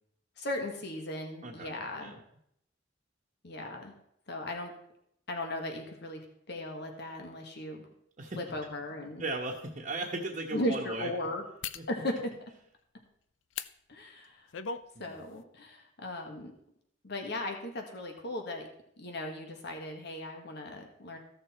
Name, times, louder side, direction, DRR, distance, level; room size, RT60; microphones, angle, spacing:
voice 1, 0.4-2.1 3.4-3.9 4.3-4.7 5.3-7.9 8.4-9.2 10.5-11.4 11.9-12.3 13.9-14.5 15.0-16.5 17.0-18.7 19.0-21.2, left 1 dB, 60° left, 3 dB, 1.6 m, -37 dB
voice 2, 1.4-2.2 8.2-8.4 9.2-11.1 11.7-11.8 14.9-15.2, right 2 dB, 40° right, -3 dB, 1.2 m, -37 dB
sound 1, 8.8-8.9 9.5-9.7 11.6-11.9 13.5-13.7 14.2-14.9 15.2-15.4, left 6 dB, 80° left, 0.5 m, -38 dB
15.0 x 6.7 x 4.3 m, 0.73 s
head